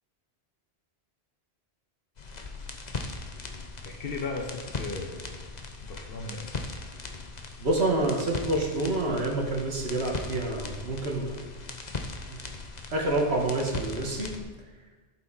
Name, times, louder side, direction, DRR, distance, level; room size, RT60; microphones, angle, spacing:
sound 1, 2.2-14.4, left 3 dB, 45° left, 1.1 m, -39 dB
voice 1, 3.8-5.4 5.8-6.6, left 3 dB, 60° left, 1 dB, 1.5 m, -36 dB
voice 2, 7.6-11.4 12.3-12.4 12.9-14.4, right 2 dB, 80° right, 0 dB, 2.0 m, -28 dB
15.0 x 7.4 x 4.2 m, 1.3 s
omnidirectional pair, 1.1 m